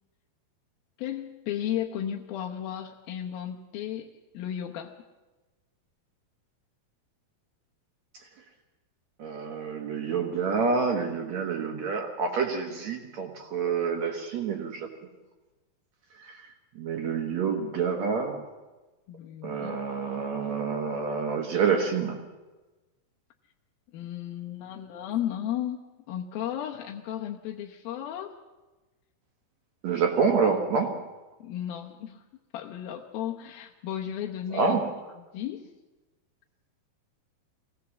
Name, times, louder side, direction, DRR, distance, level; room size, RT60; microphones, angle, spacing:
voice 1, 1.0-4.1 4.3-4.9 19.1-19.8 23.9-25.8 26.1-28.3 31.4-32.2 32.5-34.8 35.3-35.7, left 10 dB, 75° left, 1 dB, 2.7 m, -34 dB
voice 2, 9.2-14.9 16.2-18.5 19.4-22.2 29.8-31.0 34.5-34.9, right 5 dB, 55° right, 4 dB, 2.2 m, -28 dB
23.5 x 18.0 x 7.2 m, 1.2 s
omnidirectional pair, 4.5 m